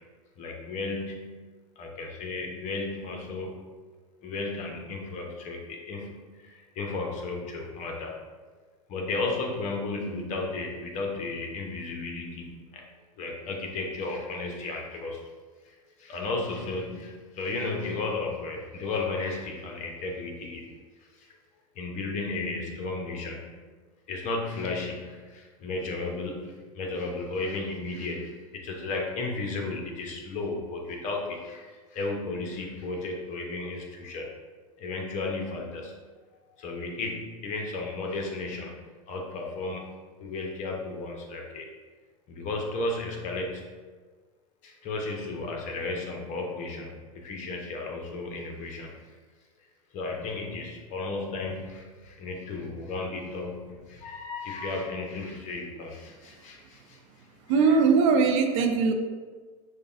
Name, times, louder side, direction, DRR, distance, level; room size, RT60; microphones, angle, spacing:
voice 1, 0.4-1.4 1.8-3.6 4.2-8.1 8.9-12.8 13.2-15.2 15.6-20.7 21.8-23.6 24.1-34.3 34.8-35.9 36.6-38.7 39.1-39.8 40.2-41.7 42.3-43.7 44.6-48.9 49.9-57.0 57.7-57.8, left 3 dB, 40° left, 1 dB, 0.8 m, -34 dB
voice 2, 57.5-58.9, right 5 dB, 55° right, 5 dB, 0.5 m, -21 dB
6.4 x 2.2 x 2.6 m, 1.4 s
hypercardioid pair, 90°, 19 cm